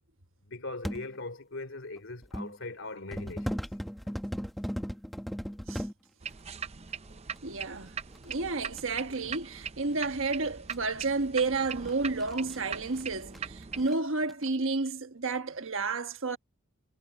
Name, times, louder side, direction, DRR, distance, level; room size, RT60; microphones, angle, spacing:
voice 1, 0.4-3.6, left 2 dB, 60° left, 3.2 m, -40 dB
sound 1, 0.8-1.1 2.0-2.5 3.1-5.9 7.4-7.5 8.1-8.8 9.8-9.9 10.2-10.3 10.7-10.8 11.4-13.0 13.3-13.4 13.7-14.0 14.3-14.5, equal, ahead, 1.2 m, -36 dB
sound 2, 6.2-13.9, right 6 dB, 30° right, 0.6 m, -41 dB
voice 2, 7.4-8.0 8.2-16.4, right 3 dB, 65° right, 1.4 m, -31 dB
head